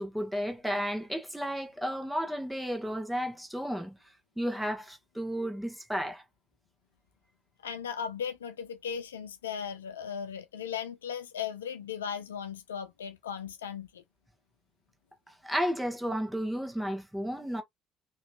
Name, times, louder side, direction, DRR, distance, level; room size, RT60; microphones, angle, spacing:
voice 1, 0.0-4.0 4.4-6.2 15.4-17.6, equal, 5° right, 1.3 m, -33 dB
voice 2, 7.6-14.0, left 7 dB, 85° left, 0.4 m, -37 dB
2.9 x 2.8 x 2.3 m
hypercardioid pair, 55°, 0 cm